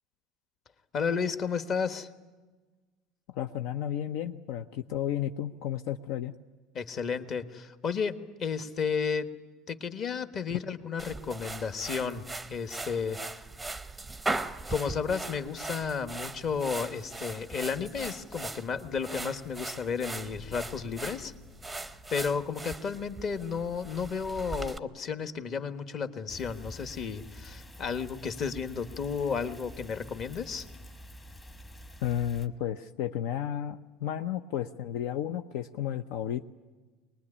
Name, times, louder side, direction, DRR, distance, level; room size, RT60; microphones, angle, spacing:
voice 1, 0.9-2.1 6.7-9.3 9.7-12.2 12.5-13.2 14.7-21.3 22.1-30.7, left 6 dB, 35° left, 9 dB, 1.3 m, -32 dB
voice 2, 3.3-6.4 10.5-10.6 32.0-36.5, left 10 dB, 70° left, 9 dB, 0.7 m, -33 dB
sound 1, 11.0-24.8, right 3 dB, 5° right, 0.7 m, -39 dB
sound 2, 20.3-24.4, left 8 dB, 55° left, 2.3 m, -52 dB
sound 3, 26.3-32.5, equal, 15° left, 1.2 m, -47 dB
24.0 x 20.0 x 9.9 m, 1.3 s
cardioid pair, 155°, 0 cm